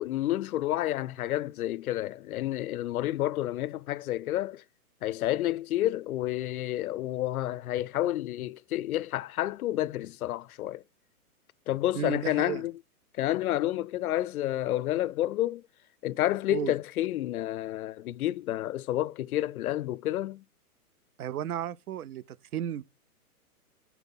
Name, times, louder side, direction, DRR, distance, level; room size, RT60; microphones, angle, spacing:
voice 1, 0.0-4.6 5.0-10.8 11.7-12.8 13.2-15.6 16.0-20.4, left 14 dB, 70° left, 0.5 m, -30 dB
voice 2, 12.0-12.6 16.5-16.7 21.2-22.8, right 10 dB, 70° right, 0.6 m, -34 dB
10.5 x 4.7 x 5.3 m
hypercardioid pair, 160°, 45 cm